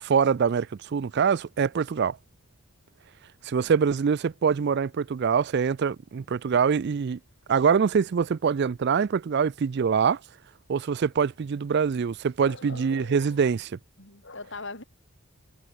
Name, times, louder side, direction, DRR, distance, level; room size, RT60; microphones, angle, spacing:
voice 1, 0.0-2.2 3.4-7.2 7.5-10.2 10.7-13.7, right 6 dB, 50° right, 0.4 m, -24 dB
voice 2, 12.4-13.5 14.0-14.8, left 3 dB, 55° left, 5.6 m, -41 dB
head